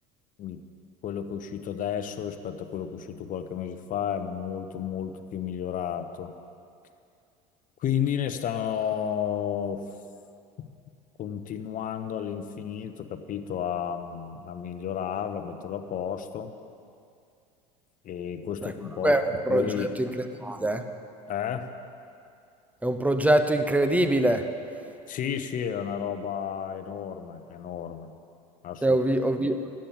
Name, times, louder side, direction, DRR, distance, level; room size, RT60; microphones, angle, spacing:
voice 1, 1.0-6.3 7.8-10.0 11.2-16.5 18.0-19.2 19.5-19.9 21.3-21.6 25.1-28.1 28.6-29.0, left 8 dB, 45° left, 8 dB, 1.0 m, -32 dB
voice 2, 19.0-20.8 22.8-24.5 28.8-29.6, right 1 dB, 5° right, 8 dB, 1.0 m, -24 dB
13.0 x 8.8 x 7.3 m, 2.5 s
hypercardioid pair, 85°, 20 cm